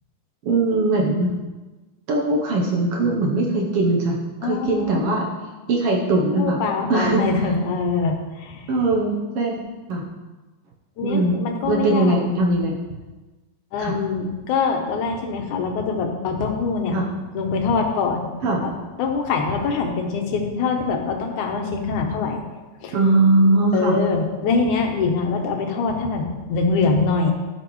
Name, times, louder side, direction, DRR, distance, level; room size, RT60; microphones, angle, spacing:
voice 1, 0.4-1.3 2.1-5.3 5.7-6.6 6.9-7.2 8.7-9.6 9.9-10.0 11.0-11.4 11.7-12.8 13.8-13.9 16.9-17.0 18.4-18.6 22.9-24.0, right 2 dB, 65° right, -1 dB, 1.5 m, -20 dB
voice 2, 4.4-5.1 6.3-8.7 11.0-12.2 13.7-17.0 17.3-18.3 18.6-18.7 19.0-22.4 22.8-23.0 23.7-27.3, left 4 dB, 75° left, 2 dB, 2.4 m, -23 dB
12.5 x 5.8 x 3.1 m, 1.2 s
omnidirectional pair, 3.5 m